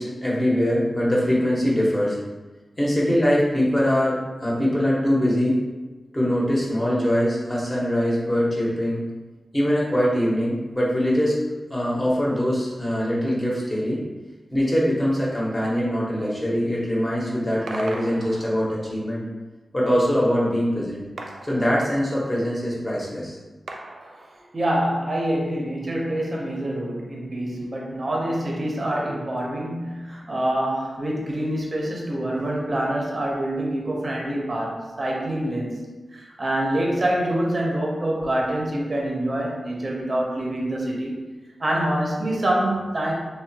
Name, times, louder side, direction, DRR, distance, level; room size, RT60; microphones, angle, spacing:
voice 1, 0.0-2.2 2.8-5.6 6.1-9.0 9.5-11.4 11.7-14.0 14.5-19.2 19.7-21.0 21.4-23.4, equal, 15° left, -6 dB, 0.8 m, -22 dB
sound 1, 17.7-19.0 21.2-22.4 23.7-24.8, right 2 dB, 85° right, 0.3 m, -39 dB
voice 2, 24.5-35.8 36.1-41.2 41.6-43.1, right 1 dB, 35° right, -2 dB, 0.6 m, -26 dB
3.4 x 2.1 x 2.7 m, 1.2 s
wide cardioid pair, 125°, 0 cm